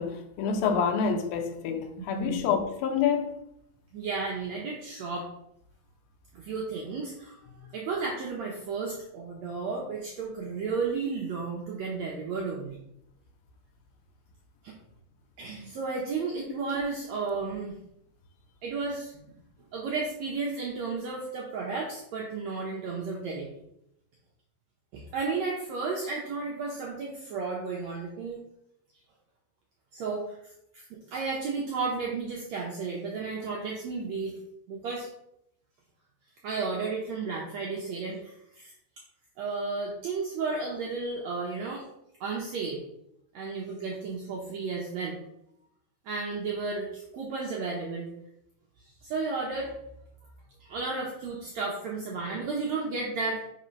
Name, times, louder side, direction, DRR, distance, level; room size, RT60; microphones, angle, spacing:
voice 1, 0.0-3.4 7.5-7.6, left 6 dB, 80° left, 2.4 m, -28 dB
voice 2, 2.0-2.4 3.9-5.3 6.3-12.8 14.6-14.8 15.4-17.8 18.6-19.1 19.7-23.5 24.9-28.4 29.9-30.4 30.7-34.4 34.7-35.1 36.4-38.7 39.4-41.9 42.2-42.8 43.3-45.2 46.0-48.1 49.0-49.8 50.6-53.4, right 4 dB, 85° right, 1.5 m, -33 dB
4.8 x 4.4 x 5.1 m
omnidirectional pair, 4.3 m